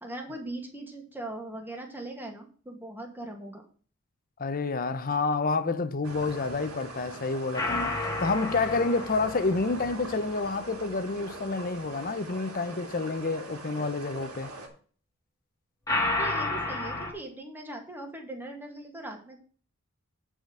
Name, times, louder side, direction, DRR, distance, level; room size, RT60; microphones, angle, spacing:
voice 1, 0.0-3.6 16.2-19.4, right 2 dB, 10° right, 1.9 m, -40 dB
voice 2, 4.4-7.9 8.2-14.5, left 3 dB, 40° left, 0.7 m, -29 dB
sound 1, 6.0-14.7, right 2 dB, 85° right, 2.8 m, -42 dB
sound 2, 7.5-10.9 15.9-17.1, left 2 dB, 15° left, 1.9 m, -31 dB
9.2 x 5.0 x 6.2 m
head